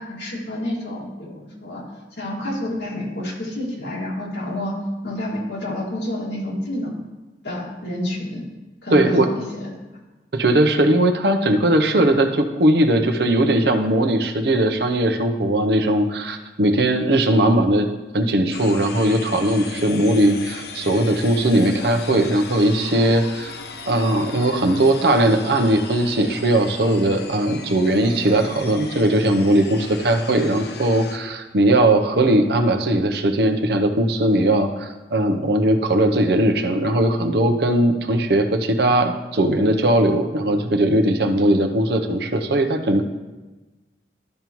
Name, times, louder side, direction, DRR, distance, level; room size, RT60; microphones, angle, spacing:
voice 1, 0.0-1.8 2.2-7.0 7.4-8.4 8.8-9.7, left 1 dB, 80° left, -4 dB, 2.2 m, -29 dB
voice 2, 8.9-9.3 10.3-17.9 18.1-23.5 23.9-43.0, right 1 dB, 70° right, 6 dB, 0.7 m, -19 dB
sound 1, 18.5-31.2, left 4 dB, 65° left, 0.6 m, -37 dB
12.5 x 5.3 x 3.0 m, 1.2 s
head